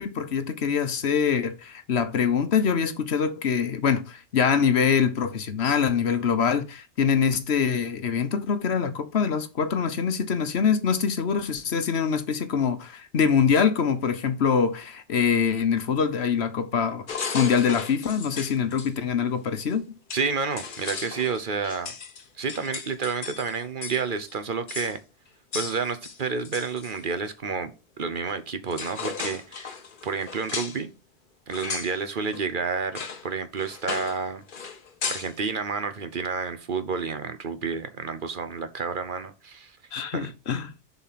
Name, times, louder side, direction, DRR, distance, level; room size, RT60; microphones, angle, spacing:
voice 1, 0.0-20.0 39.9-40.7, left 6 dB, 70° left, 1.2 m, -24 dB
sound 1, 17.1-18.9 19.7-19.8 20.1-24.0 24.3-24.4 24.7-25.0 25.5-27.0 28.3-28.4 28.7-30.8 31.5-31.9 32.3-32.4 32.9-33.2 33.6-34.2 34.5-35.3, left 5 dB, 50° left, 1.1 m, -35 dB
voice 2, 20.1-21.9 22.4-25.0 25.5-27.7 28.0-29.7 30.0-30.9 31.5-34.4 35.1-39.8 40.1-40.3, right 5 dB, 50° right, 1.0 m, -30 dB
7.1 x 4.2 x 5.8 m
omnidirectional pair, 1.1 m